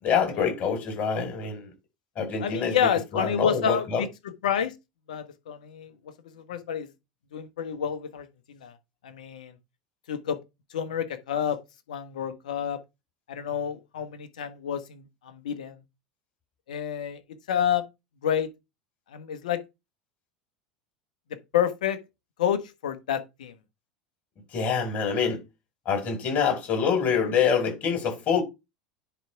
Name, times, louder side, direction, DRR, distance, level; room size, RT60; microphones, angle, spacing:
voice 1, 0.0-1.7 2.1-4.0 24.5-25.4 25.8-28.4, left 6 dB, 45° left, 5.2 m, -26 dB
voice 2, 2.4-4.1 4.4-4.8 5.1-5.9 6.3-6.9 7.3-8.7 9.0-9.5 10.1-10.4 10.7-11.6 11.9-12.8 13.3-15.8 16.7-17.2 17.5-17.9 18.2-18.5 19.1-19.6 21.3-22.0 22.4-23.5, left 8 dB, 80° left, 1.3 m, -29 dB
10.0 x 3.5 x 4.7 m
hypercardioid pair, 90°, 4 cm